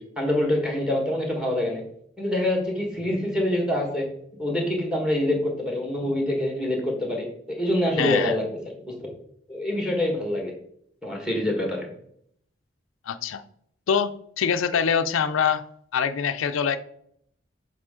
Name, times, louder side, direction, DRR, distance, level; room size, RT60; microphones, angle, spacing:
voice 1, 0.2-1.8 2.2-4.1 4.4-8.4 9.5-10.5 11.0-11.8, left 1 dB, 5° right, 1 dB, 1.5 m, -25 dB
voice 2, 8.0-8.3 13.1-13.4 13.9-15.6 15.9-16.8, left 7 dB, 85° left, 10 dB, 0.4 m, -24 dB
7.3 x 4.2 x 3.7 m, 0.68 s
head